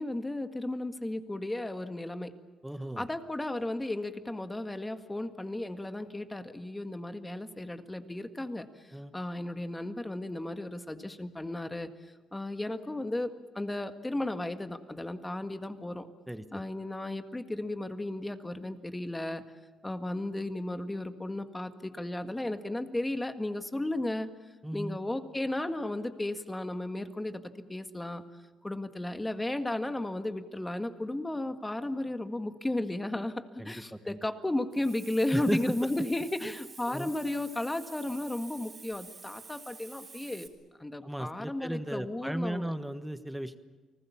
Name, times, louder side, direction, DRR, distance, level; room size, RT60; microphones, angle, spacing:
voice 1, 0.0-2.3 3.0-11.9 12.3-16.1 16.5-19.4 19.8-24.3 24.7-27.4 27.7-28.2 28.6-40.5 40.8-42.7, left 1 dB, 15° left, 8 dB, 1.8 m, -34 dB
voice 2, 2.6-3.1 8.9-9.1 16.3-16.6 24.6-25.0 33.6-34.2 35.3-35.6 36.4-36.5 36.9-37.1 41.0-43.6, right 1 dB, 5° right, 10 dB, 1.3 m, -35 dB
Hiss, 34.7-40.5, right 4 dB, 35° right, 4.0 m, -49 dB
29.5 x 19.5 x 7.3 m, 1.3 s
cardioid pair, 90°, 0 cm